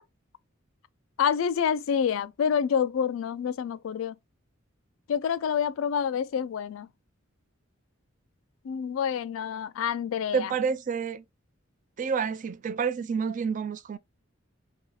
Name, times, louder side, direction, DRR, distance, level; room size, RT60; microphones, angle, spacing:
voice 1, 1.2-4.2 5.1-6.9 8.6-10.5, left 7 dB, 80° left, 0.3 m, -27 dB
voice 2, 10.3-11.2 12.0-14.0, right 6 dB, 40° right, 0.4 m, -29 dB
2.7 x 2.3 x 3.9 m
head